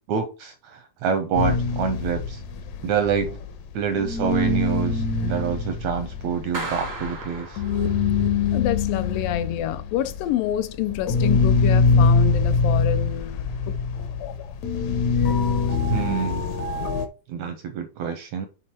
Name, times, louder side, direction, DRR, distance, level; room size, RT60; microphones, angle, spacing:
voice 1, 0.1-2.4 2.8-3.4 3.7-7.6 15.9-16.4 17.3-18.5, right 7 dB, 80° right, 1.6 m, -26 dB
sound 1, 1.4-3.7 4.0-17.1, left 4 dB, 70° left, 2.0 m, -23 dB
Clapping, 6.5-8.3, right 2 dB, 60° right, 0.6 m, -35 dB
voice 2, 8.5-13.7 14.2-14.6, left 11 dB, 85° left, 2.3 m, -28 dB
8.3 x 3.5 x 4.3 m
omnidirectional pair, 3.9 m